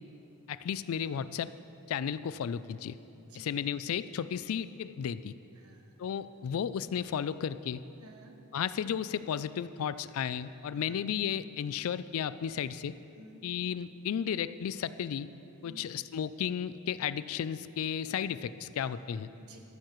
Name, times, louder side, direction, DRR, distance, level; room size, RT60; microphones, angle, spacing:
voice 1, 0.5-1.5 1.9-3.0 3.3-5.3 6.0-7.8 8.5-12.9 13.4-15.3 15.6-19.3, left 8 dB, 75° left, 15 dB, 0.3 m, -34 dB
voice 2, 3.1-3.6 5.5-5.9 8.0-8.4 10.7-11.0 13.2-13.4 15.6-15.9 19.4-19.6, equal, 90° right, 3 dB, 1.2 m, -54 dB
13.5 x 12.5 x 3.1 m, 2.8 s
head